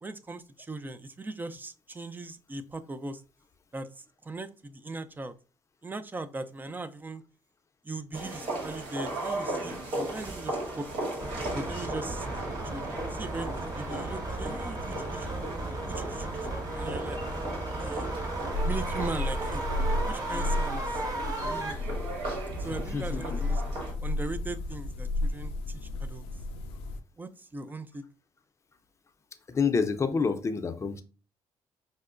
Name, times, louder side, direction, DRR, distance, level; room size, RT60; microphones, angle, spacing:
voice 1, 0.0-3.2 3.7-5.3 5.8-7.2 7.8-11.0 11.5-12.3 12.6-15.4 15.9-17.5 17.7-18.1 18.6-19.7 20.0-21.0 21.4-22.0 22.6-23.6 24.0-26.2 27.2-28.0, right 2 dB, 20° right, 12 dB, 0.4 m, -39 dB
sound 1, 8.1-23.9, right 1 dB, 70° right, 1.5 m, -37 dB
sound 2, 11.2-21.7, right 2 dB, 40° right, 1.1 m, -35 dB
sound 3, 18.5-27.0, left 1 dB, 90° left, 0.4 m, -33 dB
voice 2, 22.9-23.4 29.5-31.0, left 5 dB, 30° left, 7 dB, 0.5 m, -28 dB
5.3 x 2.1 x 2.5 m, 0.35 s
supercardioid pair, 70°, 10 cm